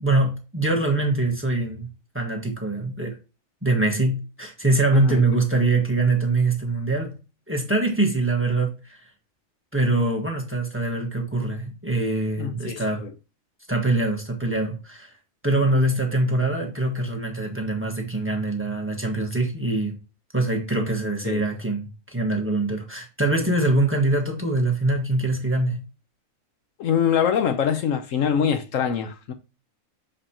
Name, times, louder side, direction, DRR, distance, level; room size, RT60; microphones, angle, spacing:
voice 1, 0.0-1.9 2.1-3.2 3.6-7.1 7.5-9.0 9.7-13.0 13.7-15.1 15.4-19.9 20.3-25.8, right 2 dB, 10° right, 1.4 m, -23 dB
voice 2, 4.9-5.2 12.4-13.1 21.3-21.4 26.8-29.3, left 8 dB, 70° left, 1.1 m, -24 dB
6.6 x 5.1 x 2.9 m
omnidirectional pair, 1.4 m